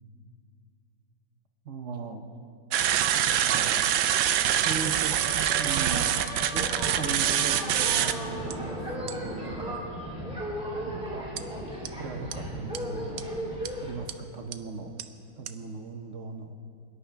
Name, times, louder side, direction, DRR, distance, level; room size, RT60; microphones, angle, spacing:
voice 1, 1.6-2.2 3.1-3.9 4.6-5.2 5.6-6.1 6.5-9.8 10.8-11.3 12.0-13.2 13.8-14.9 15.4-16.6, right 4 dB, 55° right, 5 dB, 0.8 m, -38 dB
sound 1, 2.7-8.1 8.5-8.6 9.1-9.3 11.4-11.5 11.9-12.0 12.3-12.4 12.8-12.9 13.2-13.3 13.7-13.8 14.1-14.2 14.5-14.6 15.0-15.1 15.5-15.6, right 10 dB, 85° right, 1.4 m, -25 dB
sound 2, 5.1-13.9, equal, 5° right, 3.2 m, -35 dB
23.0 x 11.5 x 3.4 m, 2.6 s
omnidirectional pair, 2.0 m